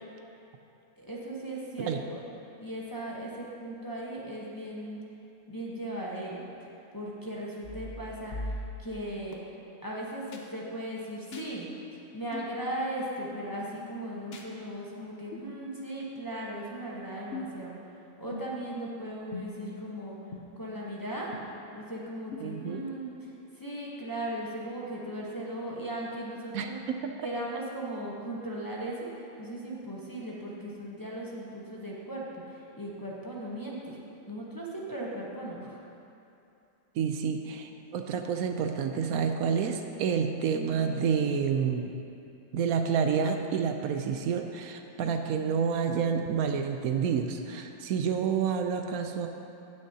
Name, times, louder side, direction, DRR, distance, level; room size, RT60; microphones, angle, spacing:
voice 1, 1.0-2.2 2.6-5.0 5.5-6.4 6.9-9.4 9.8-20.2 20.6-21.3 21.7-26.8 27.2-34.0 34.3-35.8, right 1 dB, 20° left, -5 dB, 0.6 m, -38 dB
sound 1, 7.6-9.3 10.3-10.4 11.3-11.5 12.3-12.5 13.3-13.5 14.3-14.5 15.3-15.5 16.3-16.4 17.3-17.6 18.3-18.7 19.3-19.7 20.3-20.4 21.3-21.4 22.3-22.4, left 2 dB, 55° left, 0.7 m, -40 dB
voice 2, 22.4-22.9 26.5-27.1 37.0-41.9 42.5-49.3, right 6 dB, 75° right, 5 dB, 0.8 m, -29 dB
17.5 x 6.4 x 2.8 m, 2.8 s
omnidirectional pair, 2.0 m